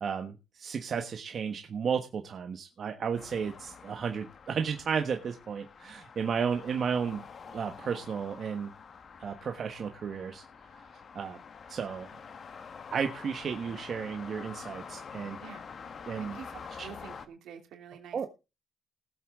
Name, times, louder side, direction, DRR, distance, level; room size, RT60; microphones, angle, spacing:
voice 1, 0.0-7.2 7.5-8.7 9.2-10.4 11.1-11.4 11.7-12.1 12.9-15.4 16.1-16.4 16.8-16.9 18.1-18.3, right 6 dB, 55° right, 5 dB, 1.3 m, -33 dB
sound 1, 3.2-17.3, left 6 dB, 50° left, 1.3 m, -47 dB
voice 2, 16.2-18.3, right 8 dB, 80° right, 4 dB, 2.9 m, -48 dB
19.0 x 7.9 x 3.7 m, 0.29 s
cardioid pair, 90°, 0 cm